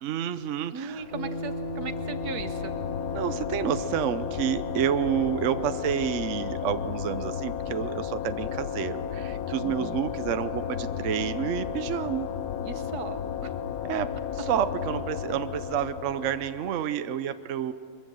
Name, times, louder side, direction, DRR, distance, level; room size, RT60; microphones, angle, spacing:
voice 1, 0.0-1.1 3.1-12.3 13.8-17.7, right 9 dB, 60° right, 11 dB, 1.0 m, -29 dB
voice 2, 0.7-2.7 9.6-10.0 12.6-13.5, right 5 dB, 85° right, 9 dB, 1.7 m, -38 dB
sound 1, 0.9-16.8, left 8 dB, 85° left, 1.5 m, -33 dB
sound 2, 1.1-10.9, left 1 dB, 25° right, 4.8 m, -41 dB
23.5 x 22.0 x 7.7 m, 2.3 s
omnidirectional pair, 1.6 m